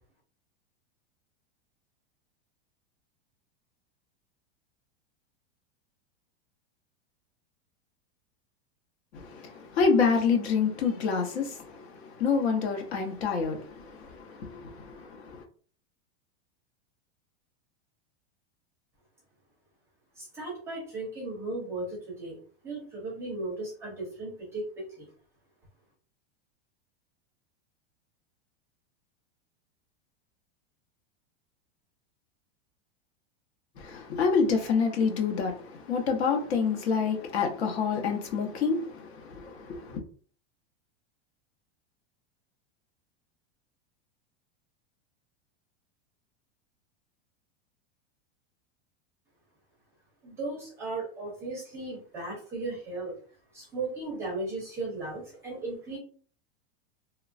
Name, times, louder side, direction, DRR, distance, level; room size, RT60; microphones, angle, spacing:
voice 1, 9.1-15.4 33.8-40.0, left 5 dB, 80° left, 1.0 m, -28 dB
voice 2, 20.2-22.4 22.6-25.1 50.2-53.1 53.5-56.0, right 2 dB, 10° right, 0.4 m, -36 dB
3.1 x 2.2 x 2.4 m
supercardioid pair, 175°, 32 cm